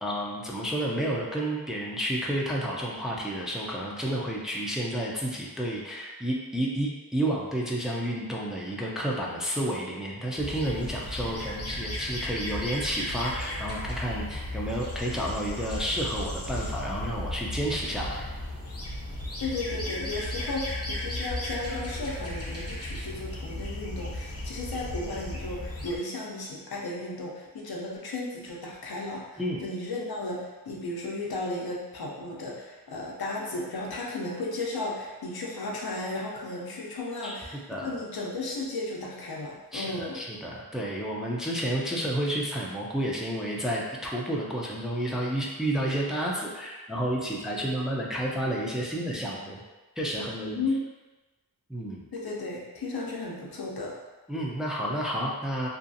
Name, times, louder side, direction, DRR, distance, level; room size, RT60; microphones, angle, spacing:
voice 1, 0.0-18.3 29.4-29.6 37.2-37.4 37.7-37.9 39.7-49.6 50.0-50.6 51.7-52.0 54.3-55.7, right 1 dB, ahead, -3 dB, 0.4 m, -30 dB
sound 1, 10.4-26.0, left 1 dB, 40° left, 0.7 m, -35 dB
voice 2, 19.4-40.2 50.5-50.8 52.1-53.9, left 2 dB, 75° left, -3 dB, 0.6 m, -34 dB
2.6 x 2.3 x 2.6 m, 1.2 s
wide cardioid pair, 55°, 37 cm